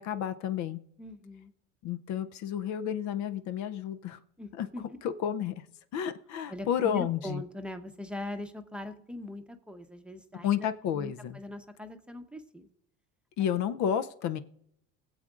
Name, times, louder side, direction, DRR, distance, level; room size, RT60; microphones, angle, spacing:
voice 1, 0.0-0.8 1.8-4.2 4.6-4.7 5.0-5.7 5.9-7.4 10.4-11.4 13.4-14.4, left 9 dB, 55° left, 11 dB, 0.6 m, -31 dB
voice 2, 1.0-1.5 4.4-4.8 6.5-10.7 10.9-12.7 13.4-13.5, left 2 dB, 5° right, 6 dB, 0.8 m, -41 dB
21.5 x 7.7 x 2.5 m, 0.71 s
supercardioid pair, 115°, 34 cm